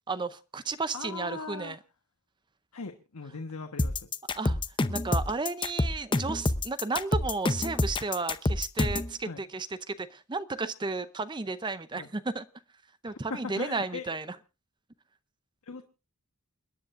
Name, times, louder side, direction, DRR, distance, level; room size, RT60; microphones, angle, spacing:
voice 1, 0.1-1.8 4.3-4.6 4.9-12.5 13.0-14.4, right 3 dB, 20° right, 14 dB, 0.6 m, -33 dB
voice 2, 0.9-1.8 2.7-4.1 9.3-9.4 12.0-12.1 13.0-14.0 15.7-15.8, left 4 dB, 90° left, 5 dB, 1.3 m, -39 dB
sound 1, 3.8-9.1, left 2 dB, 20° left, 0.7 m, -27 dB
29.5 x 10.5 x 2.5 m, 0.30 s
head